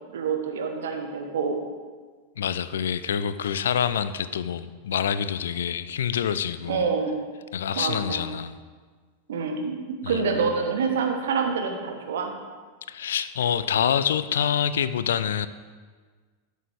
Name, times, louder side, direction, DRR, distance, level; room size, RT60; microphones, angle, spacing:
voice 1, 0.1-1.6 6.7-7.2 7.8-8.2 9.3-12.3, right 5 dB, 60° right, 4 dB, 1.1 m, -27 dB
voice 2, 2.4-6.9 7.5-8.5 10.0-10.2 12.9-15.5, left 8 dB, 65° left, 13 dB, 0.3 m, -26 dB
12.5 x 6.4 x 3.4 m, 1.5 s
figure-of-eight pair, 90°, 0 cm